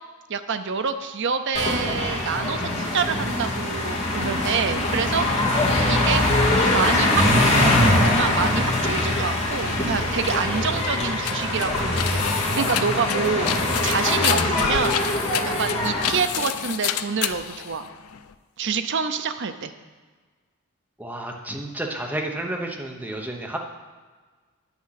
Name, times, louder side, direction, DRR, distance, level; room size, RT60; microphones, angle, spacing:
voice 1, 0.3-5.3 5.9-6.2 6.7-12.3 12.6-13.5 13.8-15.0 15.5-17.9 18.6-19.7, right 6 dB, 55° right, 9 dB, 0.6 m, -27 dB
sound 1, 1.5-16.2, left 1 dB, 30° left, 2.0 m, -22 dB
sound 2, 10.5-18.3, left 10 dB, 75° left, 0.4 m, -30 dB
voice 2, 21.0-23.6, right 1 dB, 5° right, 1 dB, 0.9 m, -31 dB
9.3 x 6.1 x 5.8 m, 1.4 s
head